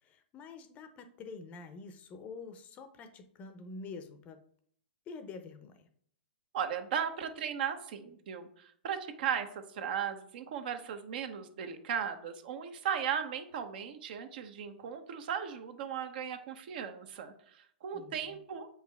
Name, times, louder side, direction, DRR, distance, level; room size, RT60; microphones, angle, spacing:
voice 1, 0.0-4.4 5.1-5.9 17.9-18.4, left 4 dB, 25° left, 9 dB, 0.6 m, -47 dB
voice 2, 6.5-18.7, right 8 dB, 55° right, 8 dB, 1.0 m, -37 dB
7.4 x 5.0 x 3.5 m, 0.63 s
hypercardioid pair, 140°, 6 cm